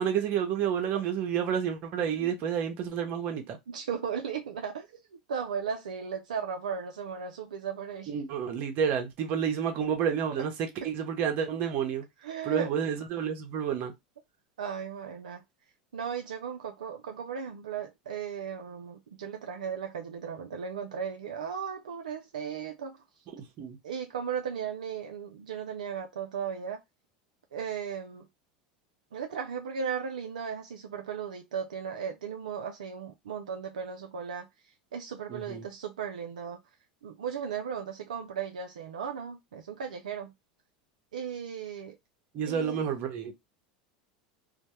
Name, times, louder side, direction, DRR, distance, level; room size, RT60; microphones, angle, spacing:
voice 1, 0.0-3.6 8.1-10.5 10.8-12.0 12.5-13.9 23.4-23.8 35.3-35.6 42.3-43.3, right 8 dB, 50° right, 0.7 m, -30 dB
voice 2, 3.7-8.1 10.8-10.9 12.2-12.7 14.6-15.4 15.9-23.0 23.8-26.8 27.5-28.3 29.1-36.6 37.0-40.3 41.1-42.0 42.4-42.9, right 7 dB, 85° right, 0.4 m, -36 dB
2.1 x 2.1 x 2.9 m
hypercardioid pair, 90°, 4 cm